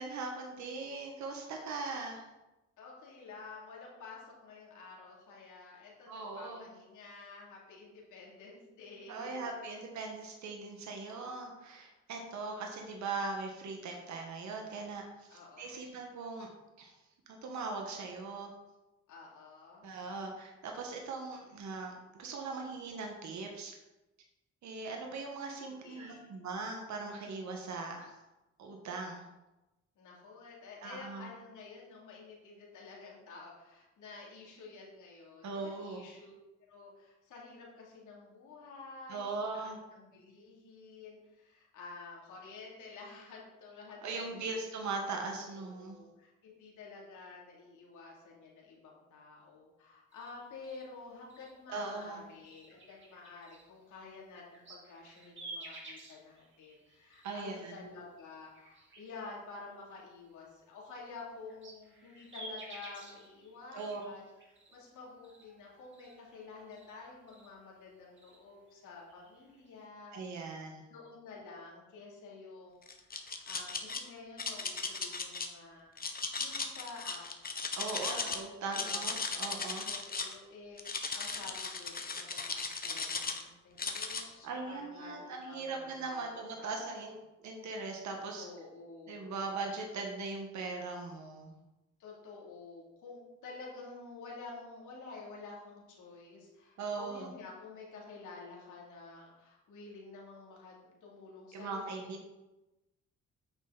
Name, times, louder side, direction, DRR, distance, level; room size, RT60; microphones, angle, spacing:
voice 1, 0.0-2.2 6.1-6.7 9.1-16.5 16.8-17.0 17.3-18.5 19.8-23.7 24.6-28.1 28.6-29.2 30.8-31.3 35.4-36.0 39.1-39.8 44.0-46.0 51.7-52.2 57.2-57.8 63.7-64.0 70.1-70.8 77.8-79.9 84.4-88.5 89.1-91.6 96.8-97.3 101.5-102.3, right 3 dB, 65° right, 2 dB, 1.6 m, -40 dB
voice 2, 2.8-9.5 15.3-15.9 19.1-19.8 25.7-26.3 30.0-36.3 36.7-39.3 39.5-44.5 45.4-64.2 64.7-70.6 70.9-77.2 77.7-78.3 78.6-86.9 88.3-89.4 92.0-100.8 101.0-102.2, left 4 dB, 80° left, -3 dB, 3.0 m, -50 dB
sound 1, 50.1-58.0 58.4-60.5 61.0-69.9, right 2 dB, 40° right, 3.1 m, -53 dB
sound 2, 72.9-74.0 74.4-75.5 76.0-78.4 78.7-80.3 80.8-83.4 83.8-84.2, left 4 dB, 30° left, 1.2 m, -37 dB
9.3 x 6.5 x 4.2 m, 1.0 s
cardioid pair, 90°, 30 cm